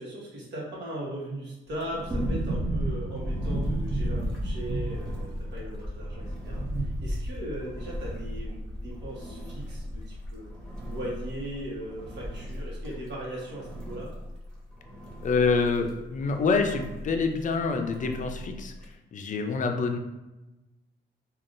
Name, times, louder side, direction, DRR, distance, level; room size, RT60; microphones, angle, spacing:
voice 1, 0.0-10.5 10.8-14.1, right 1 dB, 60° right, -5 dB, 1.1 m, -38 dB
Engine, 1.7-19.0, equal, 5° left, 1.0 m, -41 dB
sound 1, 2.1-10.9 11.2-11.3 11.6-12.6 12.8-12.9, right 1 dB, 20° right, 0.6 m, -32 dB
voice 2, 15.2-18.7 19.1-20.0, left 4 dB, 40° left, 5 dB, 0.4 m, -26 dB
3.5 x 2.4 x 2.5 m, 1.1 s
cardioid pair, 90°, 20 cm